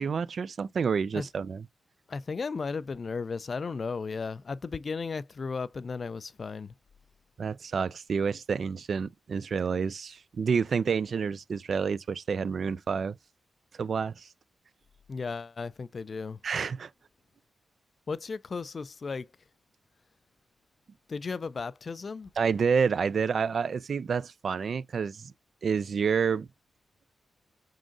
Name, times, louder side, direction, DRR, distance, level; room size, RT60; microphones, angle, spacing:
voice 1, 0.0-1.6 7.4-13.2 13.8-14.3 16.4-16.9 22.4-25.3 25.6-26.5, right 6 dB, 65° right, 0.3 m, -29 dB
voice 2, 2.1-6.7 15.1-16.4 18.1-19.3 21.1-22.3, left 4 dB, 50° left, 0.3 m, -35 dB
4.8 x 3.8 x 2.5 m
cardioid pair, 70°, 0 cm